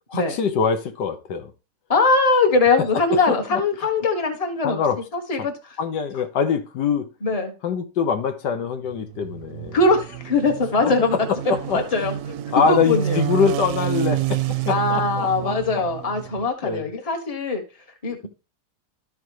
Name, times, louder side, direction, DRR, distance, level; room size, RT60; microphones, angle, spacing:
voice 1, 0.1-1.5 2.7-3.6 4.6-5.0 5.4-5.5 5.8-7.1 7.6-9.8 11.1-11.8 12.5-15.5 16.6-16.9, left 6 dB, 85° left, 1.6 m, -24 dB
voice 2, 1.9-4.8 5.1-5.5 7.2-7.5 9.7-11.1 11.7-12.1 12.7-13.2 14.7-17.6 18.0-18.3, left 3 dB, 25° left, 1.3 m, -21 dB
sound 1, 8.9-16.5, right 12 dB, 75° right, 1.0 m, -29 dB
13.0 x 4.8 x 3.1 m
omnidirectional pair, 1.8 m